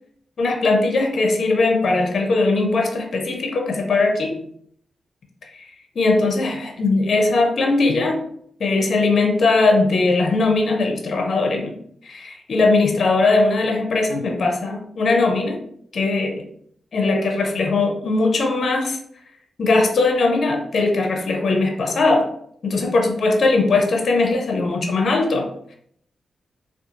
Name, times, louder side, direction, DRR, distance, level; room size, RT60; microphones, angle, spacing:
voice 1, 0.4-4.4 5.6-5.7 6.0-8.2 8.6-11.7 12.0-15.6 15.9-16.4 16.9-19.0 19.6-22.3 22.6-25.5, left 3 dB, 65° left, 2 dB, 0.4 m, -19 dB
2.4 x 2.2 x 2.8 m, 0.66 s
cardioid pair, 55°, 0 cm